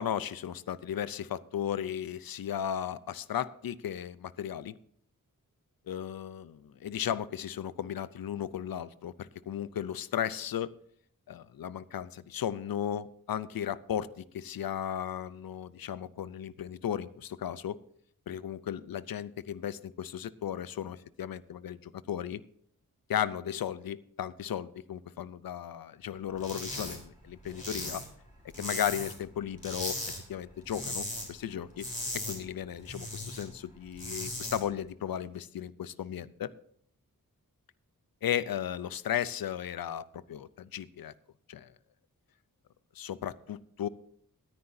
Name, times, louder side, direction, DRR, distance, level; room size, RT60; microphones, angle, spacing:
voice 1, 0.0-4.7 5.9-10.7 11.3-17.8 18.3-22.4 23.1-28.0 28.5-30.0 30.3-31.9 32.3-36.5 38.2-41.1 41.5-41.7 43.0-43.9, left 9 dB, 85° left, 17 dB, 0.6 m, -35 dB
sound 1, 26.4-27.0 27.2-29.3 29.6-30.2 30.5-31.3 31.6-33.4 33.8-34.6, left 1 dB, 20° left, 3.7 m, -37 dB
19.0 x 9.7 x 2.7 m, 0.63 s
wide cardioid pair, 120°, 34 cm